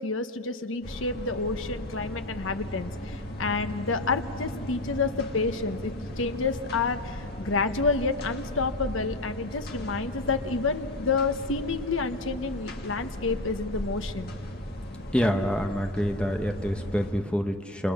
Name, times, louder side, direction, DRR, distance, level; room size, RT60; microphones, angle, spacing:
voice 1, 0.0-14.3, left 4 dB, 75° left, 8 dB, 1.2 m, -29 dB
sound 1, 0.8-17.1, equal, 50° left, 2.0 m, -37 dB
voice 2, 15.1-17.9, equal, 5° left, 4 dB, 1.1 m, -27 dB
29.0 x 27.0 x 6.7 m, 2.1 s
head